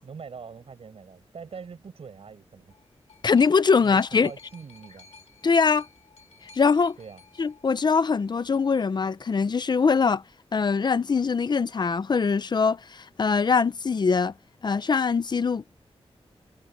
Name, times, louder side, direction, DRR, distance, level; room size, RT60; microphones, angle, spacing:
voice 1, 0.0-2.7 3.8-5.1 7.0-7.2, right 6 dB, 70° right, 7.7 m, -43 dB
sound 1, 2.4-8.4 9.3-9.4, left 4 dB, 75° left, 2.9 m, -55 dB
voice 2, 3.2-4.3 5.4-5.9 6.6-7.0 7.4-10.2 10.5-14.3 14.6-15.8, left 5 dB, 45° left, 0.6 m, -22 dB
wide cardioid pair, 165°, 11 cm